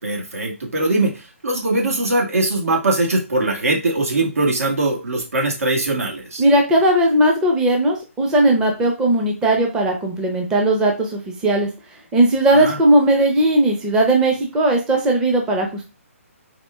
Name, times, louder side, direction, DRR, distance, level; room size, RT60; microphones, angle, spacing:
voice 1, 0.0-6.4 12.6-12.8, right 2 dB, 85° right, 0 dB, 1.8 m, -21 dB
voice 2, 6.4-11.7 12.1-15.8, right 1 dB, 10° right, 1 dB, 0.5 m, -17 dB
4.2 x 2.5 x 3.4 m, 0.29 s
hypercardioid pair, 160°, 8 cm